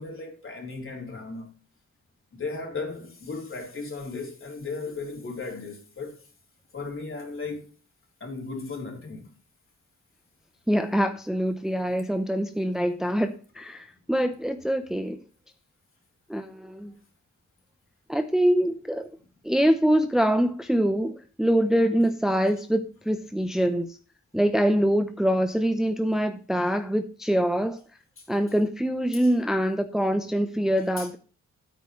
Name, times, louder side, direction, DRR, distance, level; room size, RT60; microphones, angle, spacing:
voice 1, 0.0-1.5 2.3-6.2 6.7-7.7 8.2-9.3 28.2-28.3 29.1-29.3 31.0-31.2, left 3 dB, 45° left, 3.8 m, -36 dB
voice 2, 10.7-15.2 16.3-16.9 18.1-19.1 19.4-24.0 24.3-27.8 28.3-31.2, equal, ahead, 0.7 m, -24 dB
12.5 x 8.9 x 3.2 m
wide cardioid pair, 115°, 29 cm